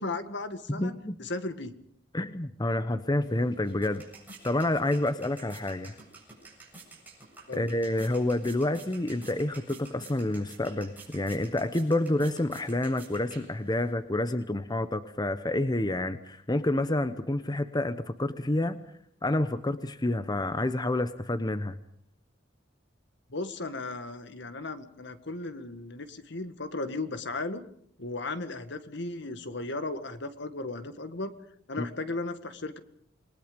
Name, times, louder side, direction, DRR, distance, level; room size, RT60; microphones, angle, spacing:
voice 1, 0.0-0.9 1.2-1.7 7.5-7.6 23.3-27.6 28.0-31.3 31.7-32.8, left 2 dB, 65° left, 10 dB, 1.8 m, -35 dB
voice 2, 0.7-1.2 2.1-4.0 4.4-5.9 7.5-18.8 19.2-21.8 31.8-31.9, left 1 dB, 20° left, 11 dB, 0.9 m, -28 dB
sound 1, 3.2-13.9, right 3 dB, 10° right, 7.8 m, -50 dB
27.5 x 21.5 x 5.3 m, 0.64 s
head